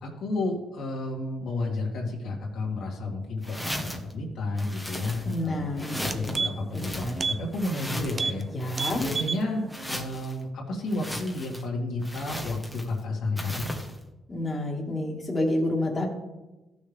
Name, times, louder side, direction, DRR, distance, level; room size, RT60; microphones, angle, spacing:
voice 1, 0.0-8.4 9.0-13.7, left 2 dB, 75° left, -2 dB, 2.5 m, -31 dB
sound 1, 3.4-4.1 4.6-5.5 5.8-6.4 6.7-8.3 8.6-9.4 9.7-10.3 10.9-11.6 12.0-13.0 13.4-14.0, equal, ahead, 1.3 m, -36 dB
voice 2, 5.2-5.9 6.2-6.4 6.7-7.2 8.5-9.0 14.3-16.1, left 1 dB, 25° left, -2 dB, 2.0 m, -29 dB
sound 2, 5.5-5.6 5.9-6.8 7.2-7.4 7.7-7.8 8.1-8.4 8.7-9.4 9.8-9.9, right 4 dB, 35° right, 0.6 m, -30 dB
14.5 x 6.4 x 3.5 m, 1.1 s
cardioid pair, 90°, 0 cm